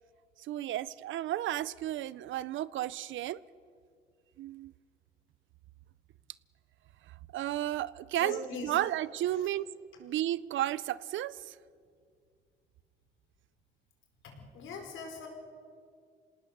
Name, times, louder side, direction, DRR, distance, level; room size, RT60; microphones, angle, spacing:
voice 1, 0.4-3.4 4.4-4.7 7.3-9.7 10.0-11.5, right 13 dB, 75° right, 19 dB, 0.5 m, -33 dB
voice 2, 8.2-8.8 14.2-15.3, left 4 dB, 80° left, 3 dB, 4.8 m, -41 dB
26.5 x 18.5 x 6.7 m, 2.2 s
cardioid pair, 90°, 20 cm